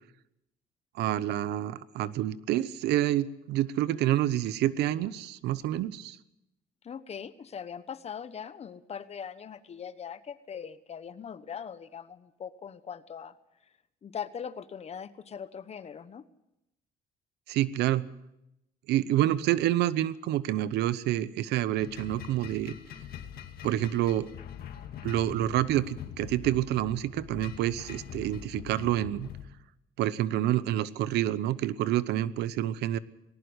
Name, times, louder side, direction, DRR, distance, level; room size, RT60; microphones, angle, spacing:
voice 1, 0.9-6.2 17.5-18.1 18.9-22.7 23.6-24.3 25.0-29.3 30.0-33.0, right 13 dB, 80° right, 17 dB, 0.9 m, -28 dB
voice 2, 6.8-13.3 14.0-16.3, left 7 dB, 40° left, 14 dB, 1.2 m, -41 dB
sound 1, 21.8-29.5, left 9 dB, 65° left, 2.4 m, -43 dB
19.0 x 18.0 x 8.1 m, 0.87 s
cardioid pair, 110°, 17 cm